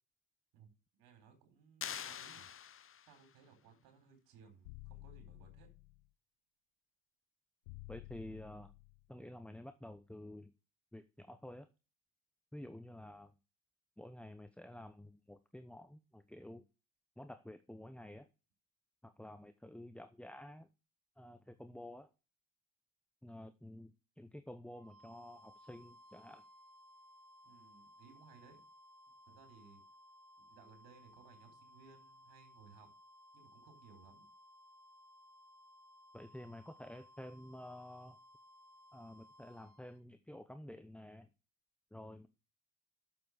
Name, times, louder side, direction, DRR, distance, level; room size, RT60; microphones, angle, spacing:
voice 1, 0.5-2.5 3.1-5.7 27.4-28.6 29.3-29.8 30.4-32.9 33.3-34.3, right 6 dB, 75° right, 5 dB, 4.3 m, -62 dB
sound 1, 1.8-3.3, left 8 dB, 35° left, 0.8 m, -45 dB
sound 2, 4.6-6.1 7.7-9.1, left 20 dB, 90° left, 0.5 m, -53 dB
voice 2, 7.9-8.7 9.1-10.5 10.9-11.7 12.5-13.4 14.0-16.7 17.2-18.3 19.0-20.7 21.2-22.1 23.2-26.4 36.1-38.2 38.9-41.3 41.9-42.3, left 1 dB, 5° left, 10 dB, 0.8 m, -51 dB
sound 3, 24.7-40.0, equal, 55° right, 5.4 m, -61 dB
7.7 x 7.4 x 6.5 m, 0.32 s
hypercardioid pair, 60°, 37 cm